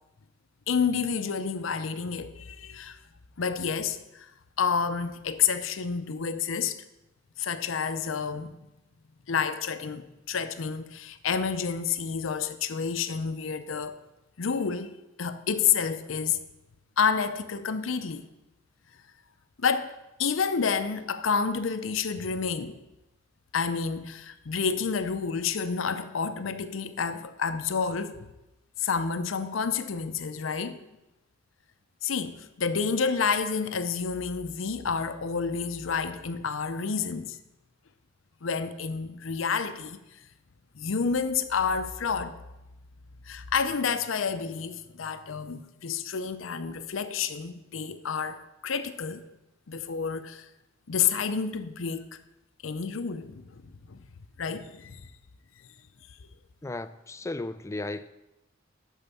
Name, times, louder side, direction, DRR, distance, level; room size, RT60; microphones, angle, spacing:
voice 1, 0.7-3.0 3.4-4.3 4.6-6.8 7.4-8.5 9.3-14.0 14.4-16.4 17.0-18.2 19.6-22.8 23.5-28.3 28.8-30.8 32.0-37.4 38.4-40.0 40.7-42.4 43.3-48.4 48.6-49.2 49.7-50.5 50.9-52.2 52.6-54.0 54.4-55.1, left 6 dB, 85° left, 0.6 m, -29 dB
voice 2, 56.6-58.1, left 2 dB, 15° left, 0.3 m, -35 dB
11.0 x 4.6 x 6.9 m
head